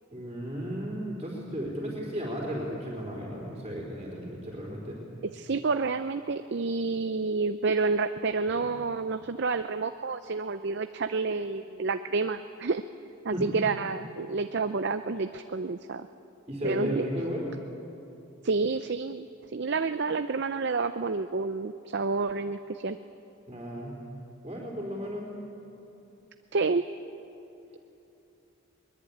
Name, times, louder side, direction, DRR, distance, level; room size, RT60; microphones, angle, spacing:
voice 1, 0.1-5.0 8.6-8.7 13.3-13.4 16.5-17.4 23.5-24.0 24.4-25.3, equal, 20° right, -5 dB, 4.1 m, -34 dB
voice 2, 5.2-12.8 13.2-16.1 16.6-17.0 18.4-19.3 19.5-23.0 26.5-26.8, right 4 dB, 50° right, 9 dB, 0.5 m, -29 dB
22.0 x 21.5 x 8.7 m, 2.8 s
head